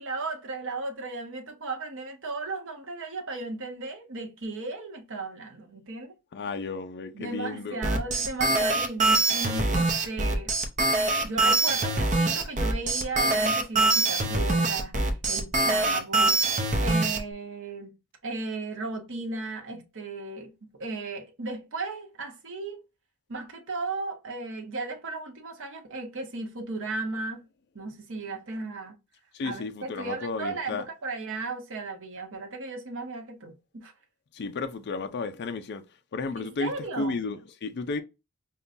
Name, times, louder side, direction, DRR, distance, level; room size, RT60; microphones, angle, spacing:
voice 1, 0.0-6.2 7.1-10.5 11.2-17.9 18.2-22.8 23.3-27.4 27.7-28.9 29.4-33.9 36.4-37.2, right 3 dB, 60° right, 0.9 m, -35 dB
voice 2, 6.3-7.8 29.3-30.8 34.3-35.8 36.1-38.0, left 3 dB, 50° left, 0.4 m, -33 dB
sound 1, 7.8-17.2, right 2 dB, 35° right, 0.6 m, -24 dB
5.4 x 2.2 x 2.5 m
head